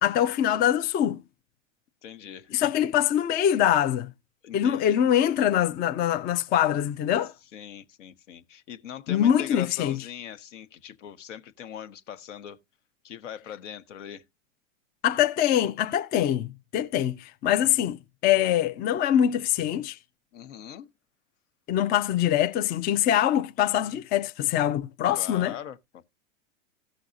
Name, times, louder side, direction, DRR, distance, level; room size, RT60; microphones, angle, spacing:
voice 1, 0.0-1.2 2.5-4.1 4.5-7.3 9.1-10.0 15.0-20.0 21.7-25.6, left 10 dB, 25° left, 0.5 m, -24 dB
voice 2, 2.0-2.5 4.4-5.0 7.5-12.6 13.0-14.2 20.3-20.9 25.2-26.0, left 9 dB, 70° left, 1.1 m, -41 dB
16.5 x 6.4 x 2.5 m
hypercardioid pair, 110°, 38 cm